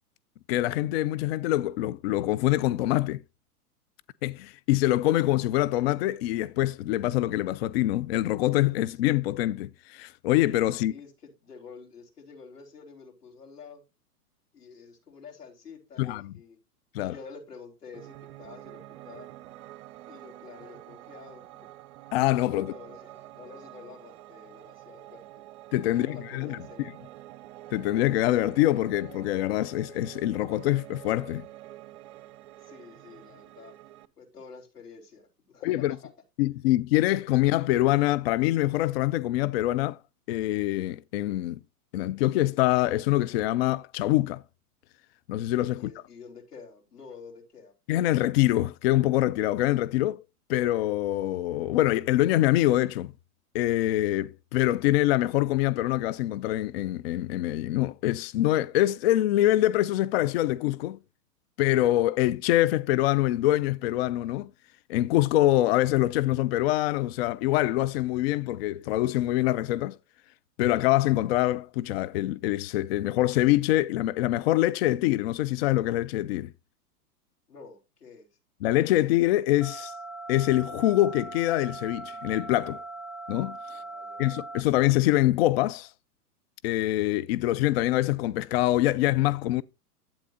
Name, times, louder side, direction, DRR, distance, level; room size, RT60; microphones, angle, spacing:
voice 1, 0.5-3.2 4.2-10.9 16.0-16.2 16.9-17.1 22.1-22.7 25.7-26.6 27.7-31.4 35.6-36.0 36.4-40.0 40.3-41.6 41.9-44.4 45.3-45.9 47.9-50.2 50.5-53.1 53.5-61.0 61.6-64.5 64.9-70.0 70.6-76.5 78.6-79.9 80.3-82.8 83.3-83.8 84.2-85.9 86.6-89.6, left 15 dB, 45° left, 0.5 m, -25 dB
voice 2, 10.7-13.8 14.5-16.6 17.0-19.3 20.1-21.7 22.5-25.2 25.9-26.9 32.6-33.7 34.2-36.1 45.8-47.7 77.5-78.3 83.7-84.2, left 5 dB, 85° left, 4.4 m, -48 dB
Piano, 17.9-34.1, right 15 dB, 45° right, 0.9 m, -47 dB
sound 1, 79.6-84.6, right 3 dB, ahead, 0.7 m, -40 dB
11.5 x 8.9 x 2.6 m
hypercardioid pair, 110°, 46 cm